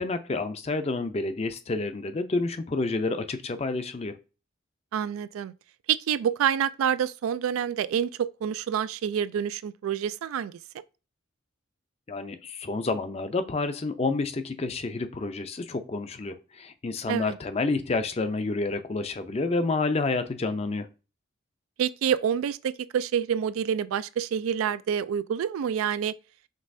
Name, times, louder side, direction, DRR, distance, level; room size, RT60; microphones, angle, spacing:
voice 1, 0.0-4.2 12.1-20.9, left 3 dB, 30° left, 0.4 m, -29 dB
voice 2, 4.9-5.5 5.9-10.6 17.1-17.4 21.8-26.1, right 8 dB, 85° right, 0.3 m, -27 dB
5.3 x 3.2 x 2.6 m
head